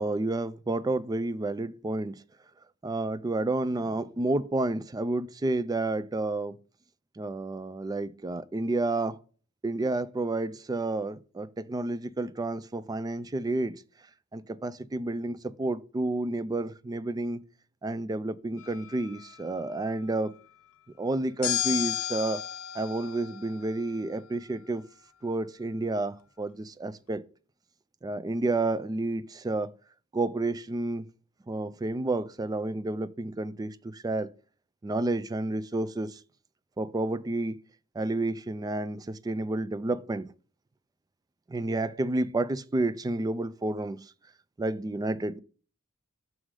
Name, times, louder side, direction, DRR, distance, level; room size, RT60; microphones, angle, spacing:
voice 1, 0.0-2.2 2.8-6.6 7.2-9.2 9.6-13.8 14.3-17.4 17.8-20.3 21.0-22.4 22.7-24.8 25.2-27.2 28.0-29.7 30.1-31.1 31.5-34.3 34.8-36.2 36.8-37.6 38.0-40.3 41.5-44.0 44.6-45.4, right 2 dB, 20° right, 0.3 m, -30 dB
sound 1, 18.6-19.5 21.4-24.0, left 12 dB, 80° left, 0.6 m, -34 dB
6.2 x 3.7 x 4.8 m
head